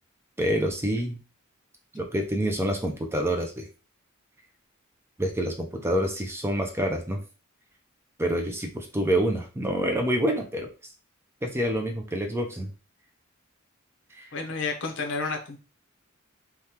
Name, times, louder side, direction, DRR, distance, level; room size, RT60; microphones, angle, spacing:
voice 1, 0.4-1.2 1.9-3.7 5.2-7.2 8.2-10.7 11.4-12.7 14.1-14.3, equal, 10° right, 2 dB, 0.4 m, -27 dB
voice 2, 14.3-15.6, left 4 dB, 60° left, 4 dB, 0.7 m, -30 dB
3.4 x 2.3 x 2.8 m, 0.33 s
head